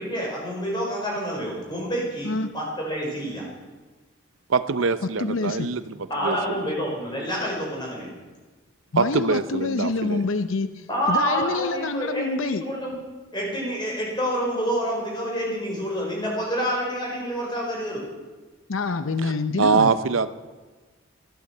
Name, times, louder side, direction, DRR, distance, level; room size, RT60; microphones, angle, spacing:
voice 1, 0.0-3.5 6.1-8.1 10.9-13.0 13.3-18.0, equal, 20° left, -2 dB, 5.2 m, -28 dB
voice 2, 2.2-2.5 5.2-5.8 8.9-12.6 18.7-19.9, left 3 dB, 70° left, 11 dB, 0.7 m, -27 dB
voice 3, 4.5-5.8 6.2-6.6 9.0-10.2 19.2-19.3 19.6-20.3, right 4 dB, 70° right, 13 dB, 0.6 m, -23 dB
15.0 x 12.0 x 7.8 m, 1.3 s
head